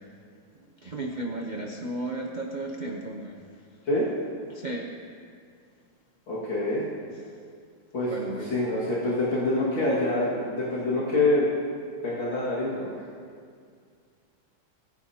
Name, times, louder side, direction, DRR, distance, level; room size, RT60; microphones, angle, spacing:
voice 1, 0.5-3.4 4.5-4.9 8.0-8.5, right 2 dB, 85° right, 0 dB, 0.4 m, -34 dB
voice 2, 6.3-6.9 7.9-11.5 12.0-12.9, left 2 dB, 70° left, -8 dB, 2.8 m, -26 dB
21.0 x 9.5 x 2.8 m, 2.2 s
omnidirectional pair, 2.1 m